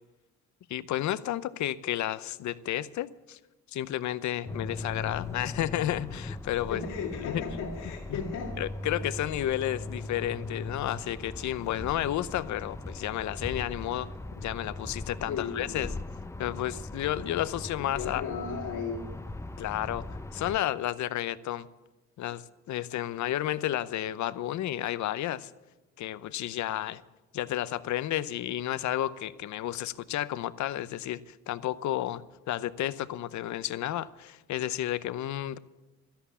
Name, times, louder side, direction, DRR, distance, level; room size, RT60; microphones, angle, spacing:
voice 1, 0.7-3.4 3.7-6.8 7.2-7.4 8.1-8.2 8.6-14.1 14.4-15.9 16.4-18.2 19.6-20.0 20.3-21.7 22.2-25.5 26.0-27.0 27.3-35.6, left 13 dB, 70° left, 0.7 m, -32 dB
sound 1, 4.5-20.6, left 2 dB, 10° left, 0.6 m, -39 dB
voice 2, 6.7-8.6 10.5-10.6 15.3-15.8 17.8-19.1, left 5 dB, 90° left, 2.2 m, -35 dB
13.0 x 11.5 x 8.3 m
cardioid pair, 90°, 30 cm